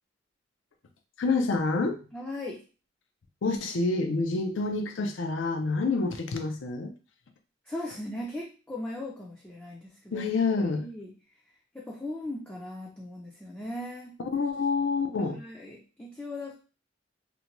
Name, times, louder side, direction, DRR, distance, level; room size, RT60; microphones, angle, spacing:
voice 1, 1.2-2.0 3.4-6.9 10.1-10.9 14.2-15.4, left 3 dB, 80° left, 5 dB, 0.5 m, -27 dB
voice 2, 2.1-2.6 7.7-10.3 10.6-11.1 11.7-14.2 15.2-16.5, left 1 dB, 10° left, -4 dB, 0.4 m, -38 dB
2.6 x 2.2 x 2.9 m, 0.34 s
head